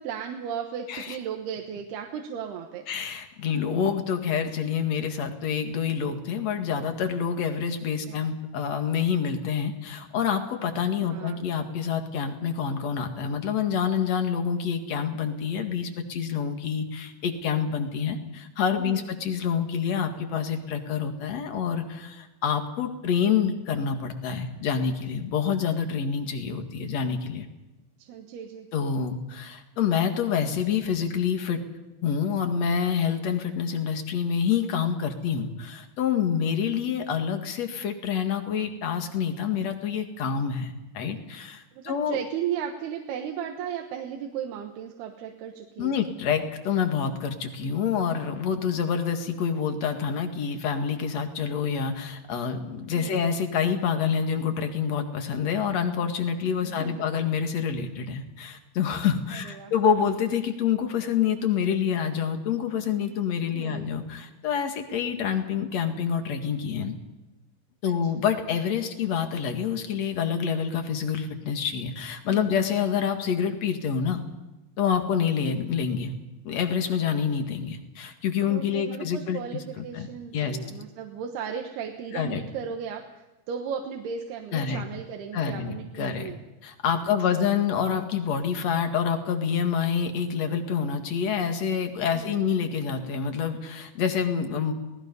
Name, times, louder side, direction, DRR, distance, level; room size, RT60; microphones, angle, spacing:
voice 1, 0.0-2.9 8.1-8.2 11.0-11.4 18.7-19.1 28.0-28.7 41.8-46.0 52.9-53.3 56.6-57.0 59.3-59.9 63.5-63.9 67.8-67.9 72.3-72.6 78.5-86.4 87.0-87.5 92.1-92.7, right 8 dB, 85° right, 3 dB, 3.3 m, -36 dB
voice 2, 2.9-27.5 28.7-31.6 32.0-42.2 45.8-67.0 67.8-74.2 74.8-76.1 76.4-80.1 80.3-80.6 82.1-82.4 84.5-84.8 85.3-86.3 86.6-94.7, left 7 dB, 50° left, 6 dB, 2.7 m, -27 dB
28.5 x 19.0 x 5.5 m, 1.1 s
omnidirectional pair, 4.5 m